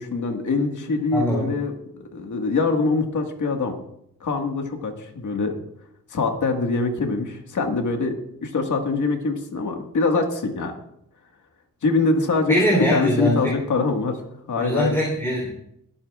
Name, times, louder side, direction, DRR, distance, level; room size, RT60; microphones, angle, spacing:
voice 1, 0.0-3.7 4.2-5.5 6.1-8.2 8.4-10.7 11.8-14.2 14.5-14.9, left 3 dB, 60° left, 4 dB, 1.8 m, -24 dB
voice 2, 1.1-1.5 12.5-13.4 14.6-15.5, equal, 10° left, -4 dB, 3.6 m, -22 dB
23.0 x 8.7 x 2.4 m, 0.74 s
cardioid pair, 80°, 33 cm